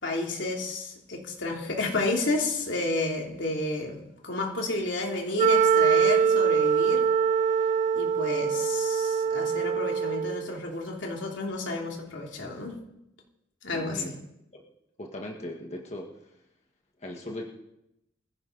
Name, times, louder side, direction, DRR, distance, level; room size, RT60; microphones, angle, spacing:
voice 1, 0.0-7.1 7.9-12.8 13.6-14.1, left 2 dB, 75° left, 0 dB, 3.1 m, -31 dB
Wind instrument woodwind instrument, 5.4-10.5, right 6 dB, 40° right, 0.7 m, -23 dB
voice 2, 13.7-14.1 15.0-16.3 17.0-17.4, left 1 dB, 35° left, 1 dB, 1.7 m, -38 dB
21.0 x 15.5 x 4.0 m, 0.85 s
head